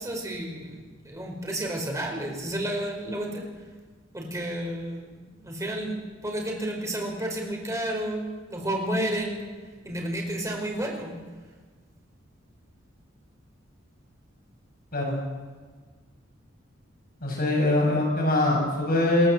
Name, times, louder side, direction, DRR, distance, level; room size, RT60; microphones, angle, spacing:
voice 1, 0.0-3.5 4.1-8.2 8.5-9.4 9.8-11.2, right 1 dB, 15° right, 0 dB, 5.1 m, -31 dB
voice 2, 17.2-19.3, left 2 dB, 50° left, -1 dB, 7.2 m, -23 dB
21.5 x 16.5 x 8.1 m, 1.4 s
head